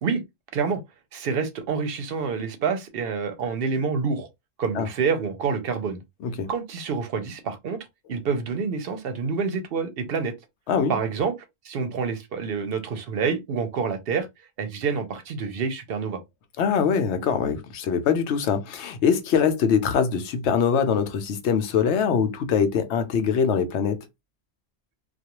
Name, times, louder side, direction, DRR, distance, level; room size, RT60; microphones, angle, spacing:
voice 1, 1.1-4.3 4.6-6.0 6.5-10.3 10.9-11.3 11.6-14.3 14.6-16.2, right 5 dB, 65° right, 0.7 m, -27 dB
voice 2, 16.6-24.0, left 6 dB, 90° left, 0.9 m, -23 dB
2.4 x 2.2 x 2.9 m
omnidirectional pair, 1.1 m